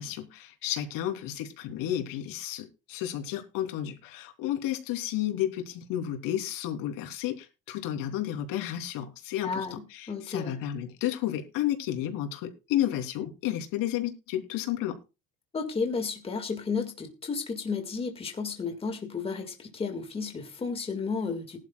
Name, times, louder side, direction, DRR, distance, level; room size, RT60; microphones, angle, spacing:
voice 1, 0.0-15.0, left 12 dB, 75° left, 3.3 m, -32 dB
voice 2, 9.4-10.5 15.5-21.6, left 5 dB, 15° left, 1.9 m, -33 dB
20.0 x 11.5 x 2.3 m
cardioid pair, 165°, 33 cm